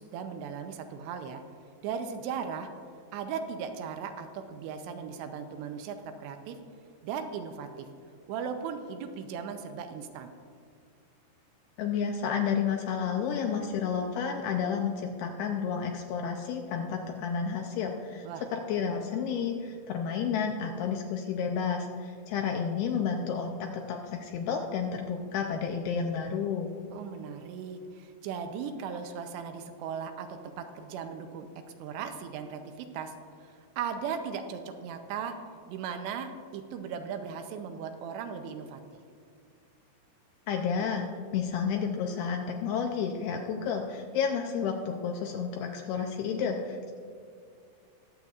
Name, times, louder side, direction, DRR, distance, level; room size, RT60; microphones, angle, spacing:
voice 1, 0.0-1.4 1.8-2.7 3.1-6.6 7.0-7.9 8.3-10.3 18.2-18.4 26.9-31.5 31.8-33.1 33.4-35.4 35.7-38.8, right 7 dB, 80° right, 7 dB, 2.7 m, -37 dB
voice 2, 11.8-26.7 40.5-41.1 41.3-46.9, left 6 dB, 80° left, 3 dB, 2.3 m, -31 dB
21.5 x 7.8 x 2.4 m, 2.3 s
omnidirectional pair, 5.1 m